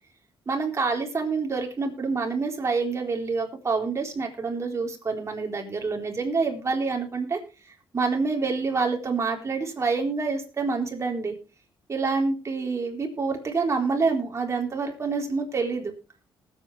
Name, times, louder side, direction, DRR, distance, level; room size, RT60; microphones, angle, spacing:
voice 1, 0.5-7.4 7.9-11.3 11.9-15.9, right 4 dB, 35° right, 1 dB, 4.0 m, -27 dB
20.0 x 8.8 x 3.4 m, 0.33 s
cardioid pair, 90°, 9 cm